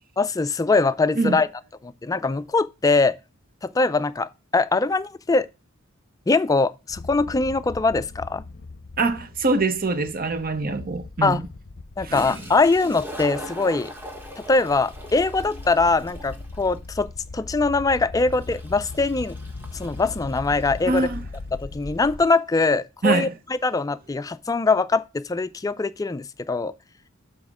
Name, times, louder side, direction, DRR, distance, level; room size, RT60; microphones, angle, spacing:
voice 1, 0.2-1.5 1.8-3.1 3.6-5.5 6.3-8.4 11.2-11.4 12.0-13.9 14.5-17.1 17.3-19.3 19.7-21.1 21.6-23.3 23.6-26.7, left 3 dB, 15° left, 0.3 m, -22 dB
sound 1, 6.9-22.3, left 3 dB, 50° left, 0.6 m, -39 dB
voice 2, 9.0-11.4 12.0-12.2 20.9-21.2 23.0-23.3, right 3 dB, 45° right, 0.8 m, -24 dB
Toilet flush, 12.1-21.5, equal, 10° right, 1.3 m, -40 dB
7.3 x 4.3 x 6.1 m
head